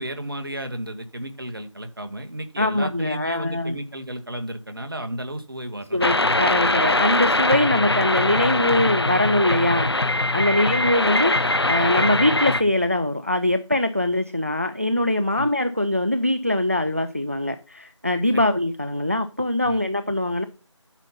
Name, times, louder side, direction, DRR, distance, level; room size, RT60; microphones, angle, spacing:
voice 1, 0.0-6.0 10.5-10.7 15.4-15.5 18.3-18.5 19.6-19.8, right 1 dB, 45° right, 1.3 m, -33 dB
voice 2, 2.6-3.7 5.9-20.4, left 1 dB, 30° right, 0.4 m, -22 dB
sound 1, 6.0-12.6, left 2 dB, 55° left, 0.8 m, -22 dB
9.0 x 6.7 x 5.5 m
figure-of-eight pair, 170°, 16 cm